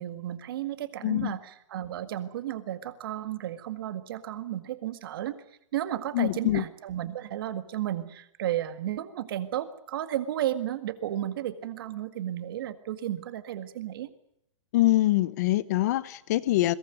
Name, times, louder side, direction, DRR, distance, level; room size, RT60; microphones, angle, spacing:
voice 1, 0.0-5.4 5.7-14.1, right 12 dB, 45° right, 1.8 m, -33 dB
voice 2, 1.0-1.3 6.1-6.6 14.7-16.8, left 16 dB, 30° left, 0.8 m, -24 dB
22.0 x 18.0 x 9.2 m
hypercardioid pair, 170°, 17 cm